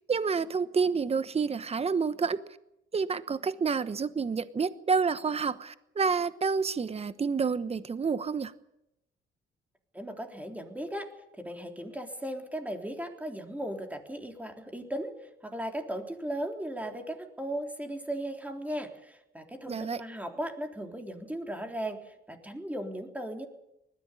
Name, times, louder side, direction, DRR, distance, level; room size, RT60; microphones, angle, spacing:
voice 1, 0.1-2.4 2.9-8.5 19.7-20.0, right 5 dB, 30° right, 14 dB, 1.1 m, -29 dB
voice 2, 9.9-11.1 11.4-15.1 15.4-23.5, right 1 dB, 5° right, 3 dB, 3.6 m, -37 dB
20.0 x 14.5 x 10.0 m, 0.87 s
cardioid pair, 90°, 20 cm